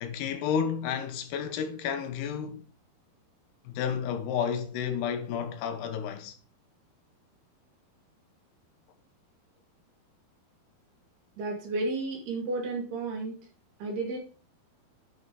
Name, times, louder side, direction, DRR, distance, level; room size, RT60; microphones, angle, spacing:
voice 1, 0.0-2.6 3.6-6.3, left 7 dB, 80° left, 3.2 m, -31 dB
voice 2, 11.4-13.4 13.8-14.2, right 2 dB, 75° right, 4.3 m, -32 dB
10.0 x 5.7 x 4.7 m
omnidirectional pair, 4.6 m